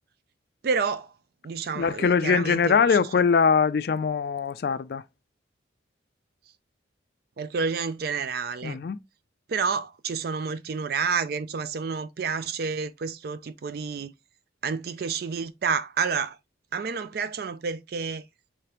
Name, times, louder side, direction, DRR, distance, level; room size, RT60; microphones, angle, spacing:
voice 1, 0.6-1.1 1.4-3.0 7.4-8.8 9.5-14.1 14.6-16.4 16.7-18.2, right 5 dB, 55° right, 0.4 m, -29 dB
voice 2, 1.7-5.0 8.6-9.0, left 6 dB, 55° left, 0.3 m, -22 dB
4.9 x 3.4 x 2.9 m
head